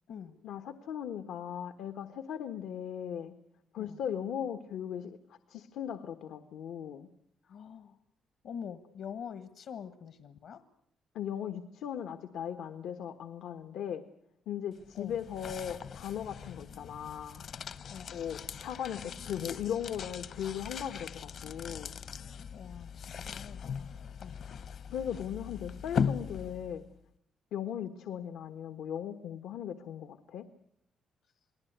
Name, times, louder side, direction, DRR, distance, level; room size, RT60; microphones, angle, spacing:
voice 1, 0.4-3.3 3.7-7.1 11.1-14.0 14.5-17.4 18.1-21.9 24.9-26.8 27.5-30.4, left 9 dB, 85° left, 8 dB, 1.3 m, -38 dB
voice 2, 7.4-8.0 8.4-10.6 14.9-15.2 17.9-18.3 22.5-24.4, left 7 dB, 65° left, 11 dB, 1.4 m, -45 dB
sound 1, 14.7-26.9, left 6 dB, 50° left, 0.9 m, -39 dB
28.5 x 20.0 x 8.1 m, 0.74 s
cardioid pair, 165°, 0 cm